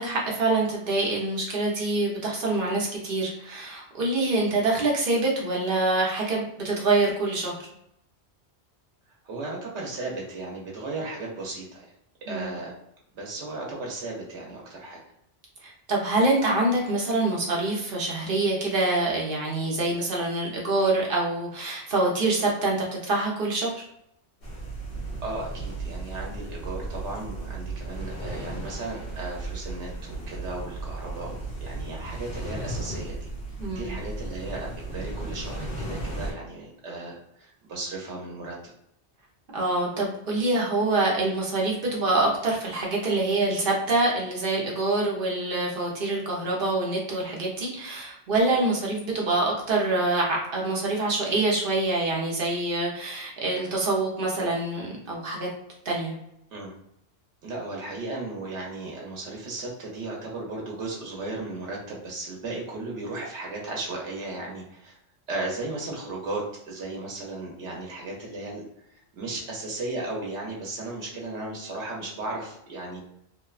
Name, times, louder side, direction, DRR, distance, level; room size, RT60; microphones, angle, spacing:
voice 1, 0.0-7.6 12.3-12.6 15.6-23.7 33.6-34.0 39.5-55.5 55.8-56.1, right 2 dB, 55° right, -2 dB, 0.9 m, -25 dB
voice 2, 9.2-11.9 12.3-12.7 13.1-15.0 25.2-33.3 33.7-38.7 56.5-56.7 57.4-65.0 65.3-68.6 68.9-73.0, right 2 dB, 85° right, -1 dB, 1.0 m, -35 dB
sound 1, 24.4-36.3, right 2 dB, 65° left, 1.0 m, -35 dB
2.7 x 2.1 x 2.3 m, 0.79 s
omnidirectional pair, 1.1 m